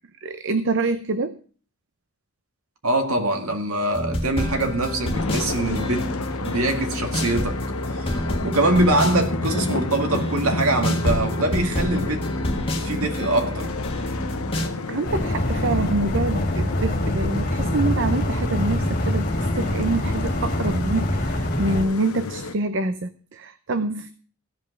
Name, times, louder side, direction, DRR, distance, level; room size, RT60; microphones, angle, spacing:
voice 1, 0.2-1.4 14.0-24.1, right 2 dB, 60° right, 0.6 m, -26 dB
voice 2, 2.8-7.6 8.0-8.1 8.4-12.3 12.8-13.7, right 1 dB, 85° right, 1.9 m, -23 dB
sound 1, 3.9-14.7, equal, 25° left, 1.5 m, -28 dB
sound 2, 5.1-22.5, left 3 dB, 80° left, 0.9 m, -31 dB
sound 3, 15.1-21.8, equal, 40° left, 2.1 m, -25 dB
16.0 x 5.5 x 6.5 m
head